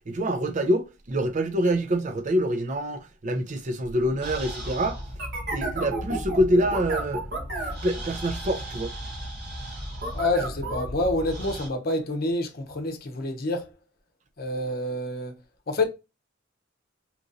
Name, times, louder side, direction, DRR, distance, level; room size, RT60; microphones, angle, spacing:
voice 1, 0.1-5.0 5.5-7.2 7.6-8.9, equal, 40° right, 0.5 m, -26 dB
sound 1, 4.2-11.7, right 1 dB, 55° right, 1.2 m, -33 dB
voice 2, 10.1-13.7 14.4-15.4 15.7-15.9, left 2 dB, 50° left, 0.7 m, -27 dB
3.0 x 2.6 x 3.8 m
head